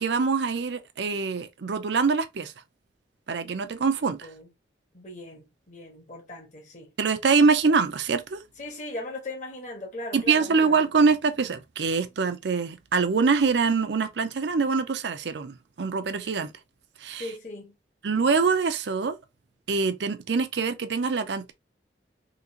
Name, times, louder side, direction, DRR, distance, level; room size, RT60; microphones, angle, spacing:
voice 1, 0.0-2.5 3.3-4.3 7.0-8.4 10.1-16.5 17.0-17.3 18.0-19.2 19.7-21.5, right 4 dB, 75° right, 0.5 m, -24 dB
voice 2, 4.9-6.9 8.6-10.8 17.2-17.7, left 2 dB, 45° left, 1.4 m, -38 dB
3.8 x 2.9 x 2.8 m
head